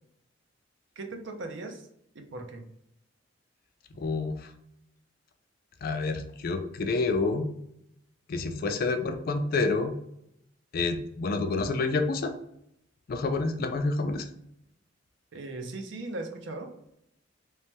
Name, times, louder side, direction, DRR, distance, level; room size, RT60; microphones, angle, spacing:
voice 1, 1.0-1.9 2.1-2.7 15.3-16.7, right 2 dB, 65° right, 5 dB, 0.5 m, -38 dB
voice 2, 4.0-4.5 5.8-7.5 8.3-10.0 10.7-12.3 13.1-14.3, left 3 dB, 50° left, 6 dB, 0.4 m, -28 dB
3.1 x 2.1 x 2.8 m, 0.76 s
head